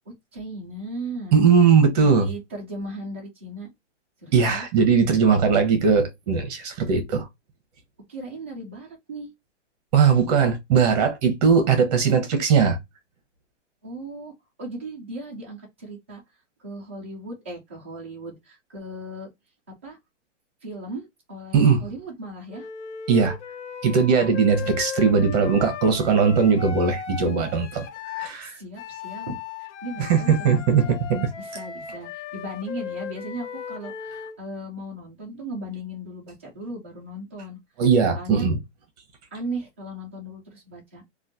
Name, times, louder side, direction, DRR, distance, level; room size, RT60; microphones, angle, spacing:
voice 1, 0.3-1.4 2.0-3.7 4.2-5.2 8.1-9.3 11.6-12.3 13.8-14.3 14.6-16.2 16.6-19.3 19.8-20.0 20.6-22.7 24.3-24.8 28.4-31.0 31.4-37.6 38.1-38.4 39.3-41.0, right 1 dB, 10° right, 0.3 m, -37 dB
voice 2, 1.3-2.3 4.3-7.3 9.9-12.8 21.5-21.8 23.1-23.3 23.8-28.6 30.0-31.3 37.8-38.6, right 6 dB, 35° right, 1.0 m, -19 dB
Wind instrument woodwind instrument, 22.5-28.3 28.8-34.4, left 7 dB, 75° left, 0.8 m, -36 dB
3.1 x 2.4 x 2.6 m
hypercardioid pair, 160°, 36 cm